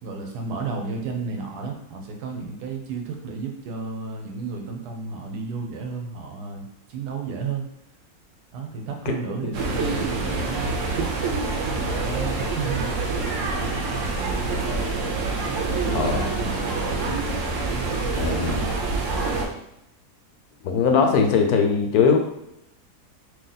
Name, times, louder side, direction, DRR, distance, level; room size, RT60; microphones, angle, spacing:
voice 1, 0.0-7.7 8.5-11.1 11.9-12.9 15.6-17.2, right 4 dB, 90° right, 3 dB, 1.2 m, -32 dB
sound 1, 9.5-19.5, right 3 dB, 60° right, 0.9 m, -26 dB
voice 2, 15.9-16.2 18.1-18.7 20.6-22.2, left 5 dB, 75° left, 4 dB, 1.1 m, -20 dB
2.9 x 2.8 x 3.9 m, 0.81 s
omnidirectional pair, 1.7 m